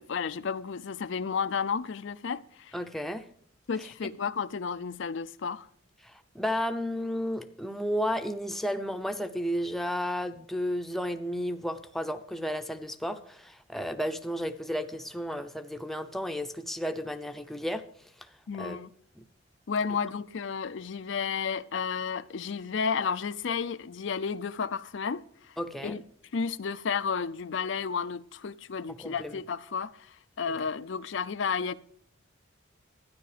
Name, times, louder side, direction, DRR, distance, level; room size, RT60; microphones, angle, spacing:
voice 1, 0.0-2.7 3.7-5.7 18.5-18.9 19.7-25.2 25.8-26.0 26.3-31.7, left 6 dB, 65° left, 0.5 m, -32 dB
voice 2, 2.7-3.3 3.8-3.9 6.0-17.8 18.5-18.8 19.2-19.3 25.6-26.0 28.9-29.4, equal, ahead, 0.7 m, -33 dB
12.5 x 10.0 x 5.0 m
head